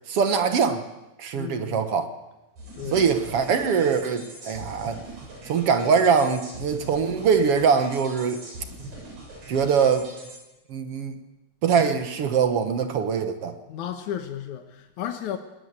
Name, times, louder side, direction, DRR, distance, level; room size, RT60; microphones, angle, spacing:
voice 1, 0.1-0.8 1.2-2.1 2.9-5.0 5.5-8.4 9.5-10.1 10.7-11.2 11.6-13.6, right 6 dB, 60° right, 2.1 m, -22 dB
voice 2, 1.3-1.8 2.8-3.1 13.7-15.4, left 10 dB, 85° left, 2.6 m, -33 dB
sound 1, 2.6-10.4, right 1 dB, 80° right, 8.5 m, -42 dB
21.0 x 18.5 x 8.3 m
omnidirectional pair, 3.4 m